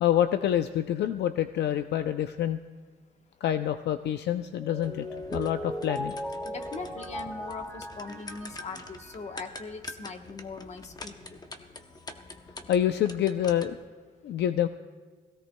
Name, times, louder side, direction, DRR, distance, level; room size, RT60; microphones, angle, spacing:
voice 1, 0.0-2.6 3.4-5.1 5.3-6.2 12.7-13.8 14.2-14.7, left 11 dB, 65° left, 10 dB, 0.5 m, -27 dB
Mallet percussion, 4.6-9.6, equal, 5° left, 1.1 m, -38 dB
sound 1, 4.8-13.9, left 2 dB, 20° left, 0.8 m, -45 dB
voice 2, 6.4-11.4, left 4 dB, 35° left, 5 dB, 1.1 m, -41 dB
21.5 x 16.5 x 2.2 m, 1.5 s
cardioid pair, 135°, 19 cm